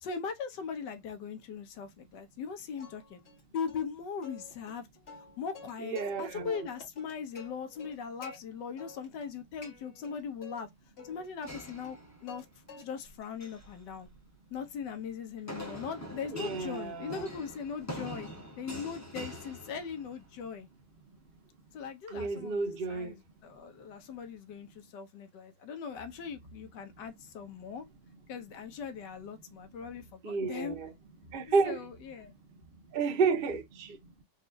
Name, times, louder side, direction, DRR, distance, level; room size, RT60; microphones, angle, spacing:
voice 1, 0.0-3.2 3.5-4.9 5.4-10.7 11.0-12.4 12.8-14.1 14.5-18.3 18.6-20.7 21.7-22.6 22.9-27.8 28.3-30.8 31.5-32.3, left 6 dB, 90° left, 1.5 m, -40 dB
Plucked string instrument, 2.8-3.4 3.7-3.8 4.2-6.2 6.5-8.4 8.8-9.3 9.6-10.6 11.0-12.4 12.7-13.2 13.6-17.8, left 4 dB, 40° left, 1.5 m, -52 dB
voice 2, 5.8-6.6 16.3-17.3 22.1-23.1 30.2-30.9 31.3-31.8 32.9-34.0, right 4 dB, 50° right, 0.7 m, -31 dB
sound 1, 11.5-12.5 13.2-13.7 15.5-20.3, equal, 15° left, 0.5 m, -44 dB
4.1 x 2.4 x 2.5 m
omnidirectional pair, 1.8 m